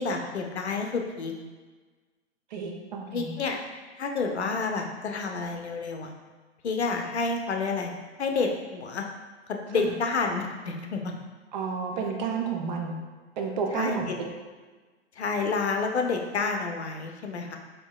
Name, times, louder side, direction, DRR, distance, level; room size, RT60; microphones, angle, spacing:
voice 1, 0.0-1.3 3.1-3.6 4.0-6.1 6.6-7.9 8.2-9.0 9.5-11.0 13.7-14.1 15.2-17.6, left 4 dB, 75° left, 3 dB, 0.6 m, -29 dB
voice 2, 2.5-3.4 9.7-9.9 11.5-13.0 13.4-14.3, right 5 dB, 45° right, 2 dB, 0.5 m, -31 dB
4.4 x 2.7 x 2.3 m, 1.4 s
figure-of-eight pair, 105°, 34 cm